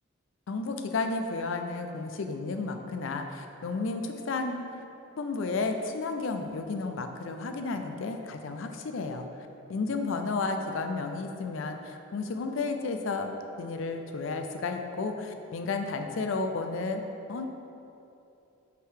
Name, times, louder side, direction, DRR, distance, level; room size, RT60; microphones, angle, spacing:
voice 1, 0.5-4.6 5.2-9.3 9.7-13.3 13.6-17.0 17.3-17.5, left 3 dB, 65° left, 6 dB, 0.4 m, -32 dB
5.6 x 3.8 x 4.7 m, 2.8 s
head